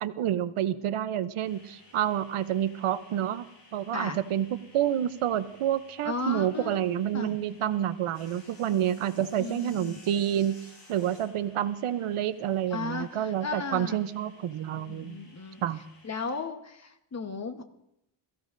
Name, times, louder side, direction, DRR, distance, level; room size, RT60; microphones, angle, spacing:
voice 1, 0.0-3.4 3.7-4.5 4.7-10.5 10.9-15.1 15.6-15.8, right 11 dB, 80° right, 13 dB, 0.8 m, -28 dB
sound 1, 1.4-16.4, left 2 dB, 60° left, 6.7 m, -56 dB
voice 2, 6.0-7.4 9.2-10.0 12.7-14.0 14.8-15.6 16.0-17.6, left 4 dB, 30° left, 7 dB, 1.1 m, -36 dB
22.0 x 15.0 x 2.6 m, 0.79 s
wide cardioid pair, 130°, 50 cm